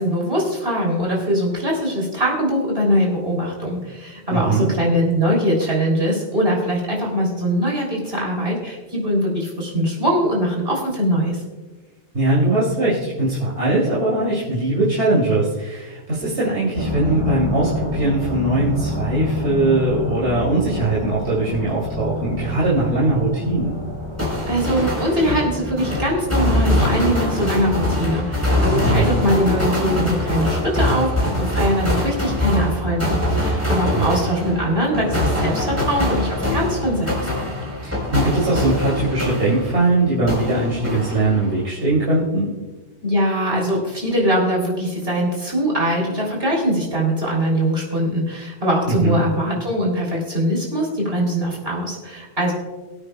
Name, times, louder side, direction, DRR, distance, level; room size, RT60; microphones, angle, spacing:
voice 1, 0.0-11.4 24.5-37.2 43.0-52.5, equal, 60° right, -2 dB, 3.6 m, -22 dB
voice 2, 4.3-4.7 12.1-23.7 28.8-29.2 33.9-34.1 37.8-42.5 49.0-49.2, right 2 dB, 75° right, -8 dB, 3.0 m, -20 dB
sound 1, 16.7-29.5, left 1 dB, 35° right, 2.1 m, -30 dB
sound 2, 24.2-39.9 40.3-41.6, left 1 dB, 10° right, 4.1 m, -23 dB
23.0 x 8.9 x 2.3 m, 1.2 s
omnidirectional pair, 1.1 m